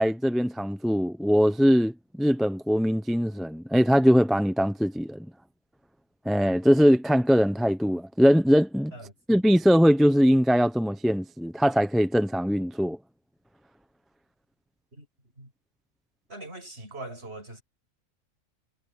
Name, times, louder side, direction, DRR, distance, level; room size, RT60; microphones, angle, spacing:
voice 1, 0.0-5.3 6.3-8.9 9.3-13.0, equal, ahead, 0.6 m, -21 dB
voice 2, 16.3-17.6, right 2 dB, 50° right, 7.0 m, -41 dB
omnidirectional pair, 1.4 m